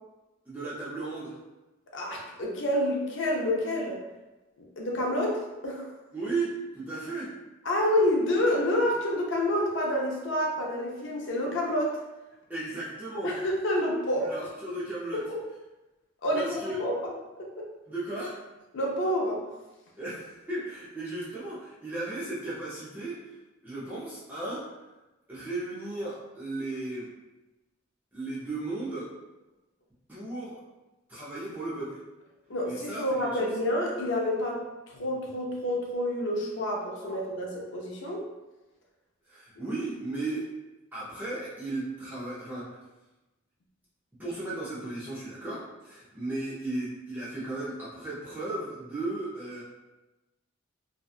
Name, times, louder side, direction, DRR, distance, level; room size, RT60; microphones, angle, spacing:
voice 1, 0.5-1.4 6.1-7.3 12.5-13.3 14.2-15.2 16.3-16.8 17.9-18.4 20.0-23.4 23.6-24.7 25.3-27.1 28.1-29.1 30.1-30.6 31.1-32.0 32.7-33.5 37.0-37.2 39.3-40.5 40.9-42.8 44.2-49.6, right 2 dB, 10° right, -10 dB, 0.5 m, -35 dB
voice 2, 1.9-4.0 4.6-5.9 7.6-12.0 13.2-14.3 15.1-15.4 16.2-17.7 18.7-19.4 32.5-38.2, left 1 dB, 60° left, -1 dB, 0.5 m, -28 dB
2.7 x 2.2 x 2.4 m, 1.1 s
head